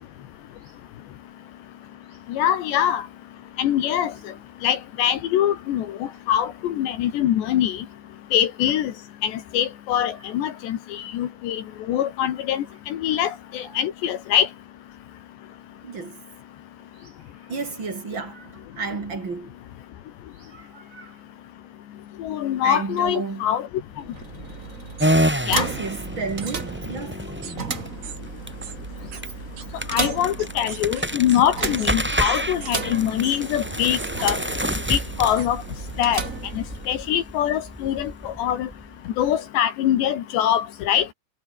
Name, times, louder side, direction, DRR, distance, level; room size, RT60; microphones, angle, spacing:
voice 1, 2.3-3.1 3.6-4.3 4.6-7.9 8.3-8.9 9.2-14.5 22.2-23.7 25.5-25.7 29.9-34.4 34.9-35.6 36.0-36.3 36.6-38.7 39.2-41.1, left 10 dB, 80° left, 4.0 m, -23 dB
voice 2, 15.8-16.2 16.9-19.6 20.4-21.2 22.6-23.5 25.0-27.8 28.9-29.3 29.7-29.8, right 4 dB, 30° right, 3.4 m, -34 dB
sound 1, 23.9-37.2, right 5 dB, 45° right, 1.0 m, -34 dB
sound 2, 25.0-39.2, equal, 5° right, 2.9 m, -29 dB
sound 3, 25.0-25.2 26.4-26.6 27.4-27.6 28.0-28.2 28.6-28.8 29.1-29.2 29.6-29.7 30.0-31.4 31.8-32.0 32.2-32.7 33.2-33.4 34.0-34.1 34.7-34.8 35.4-35.5, right 8 dB, 75° right, 5.7 m, -39 dB
omnidirectional pair, 5.0 m